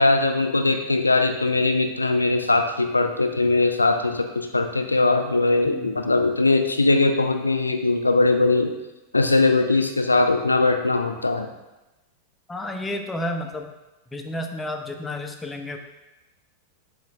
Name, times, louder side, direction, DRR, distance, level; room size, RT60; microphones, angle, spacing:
voice 1, 0.0-8.7 9.1-11.5, left 3 dB, 80° left, 6 dB, 0.4 m, -20 dB
voice 2, 12.5-13.7 14.1-15.8, left 1 dB, 10° left, 4 dB, 0.5 m, -31 dB
6.9 x 3.1 x 2.4 m, 1.0 s
figure-of-eight pair, 90°, 0 cm